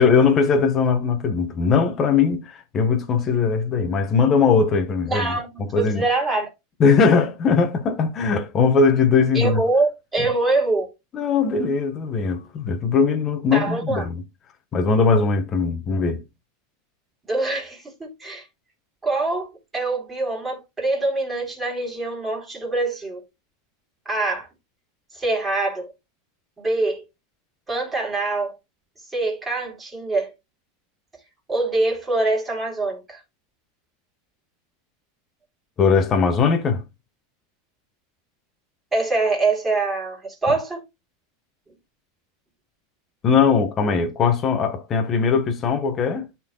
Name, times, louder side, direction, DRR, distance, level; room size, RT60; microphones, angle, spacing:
voice 1, 0.0-6.0 6.8-9.6 11.1-14.2 14.7-16.2 35.8-36.8 40.5-40.6 43.2-46.3, left 5 dB, 30° left, 1.4 m, -20 dB
voice 2, 5.1-5.5 5.7-6.5 9.3-10.9 13.5-14.0 17.3-18.4 19.0-23.2 24.1-24.5 25.1-25.9 26.6-27.0 27.7-28.5 29.1-30.3 31.5-33.2 38.9-40.8, right 2 dB, 15° right, 3.9 m, -24 dB
12.5 x 4.5 x 2.3 m
supercardioid pair, 140°, 0 cm